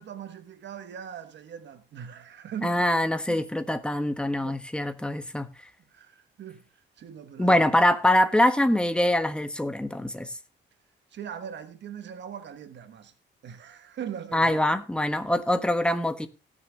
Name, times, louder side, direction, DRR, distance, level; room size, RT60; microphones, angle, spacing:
voice 1, 0.0-2.8 3.3-3.5 4.4-4.6 5.9-7.6 11.1-13.1 13.4-14.6, right 8 dB, 65° right, 1.3 m, -40 dB
voice 2, 2.6-5.5 7.4-10.3 14.3-16.3, left 1 dB, 5° left, 1.3 m, -24 dB
18.0 x 6.8 x 3.4 m
cardioid pair, 90°, 20 cm